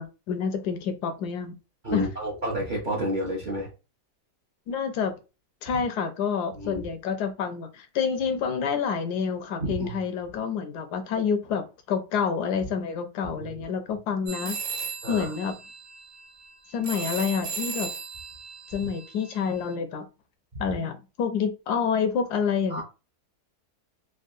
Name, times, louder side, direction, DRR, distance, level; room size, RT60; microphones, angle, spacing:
voice 1, 0.0-1.6 1.9-2.1 4.7-5.1 5.6-14.6 15.1-15.6 16.7-17.9 18.7-20.0 20.6-22.8, left 6 dB, 80° left, 1.1 m, -28 dB
voice 2, 1.8-3.7 6.5-6.8 9.6-10.0 13.3-13.5 15.0-15.3 16.9-17.0 22.7-22.8, right 1 dB, 45° right, 0.6 m, -30 dB
sound 1, 14.3-19.7, right 5 dB, 85° right, 1.3 m, -36 dB
3.6 x 2.2 x 2.4 m
omnidirectional pair, 1.7 m